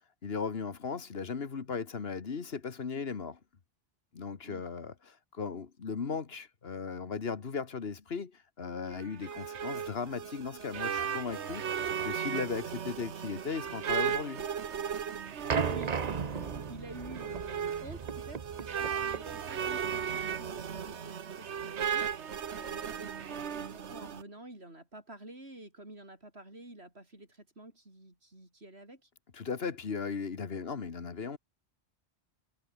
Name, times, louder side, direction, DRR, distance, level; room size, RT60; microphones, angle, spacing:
voice 1, 0.2-3.4 4.1-14.4 29.3-31.4, left 5 dB, 65° left, 1.7 m, -37 dB
sound 1, 8.9-24.2, right 7 dB, 90° right, 1.4 m, -36 dB
sound 2, 15.5-20.9, right 6 dB, 40° right, 0.9 m, -36 dB
voice 2, 15.7-29.1, right 1 dB, 70° right, 7.4 m, -49 dB
omnidirectional pair, 1.1 m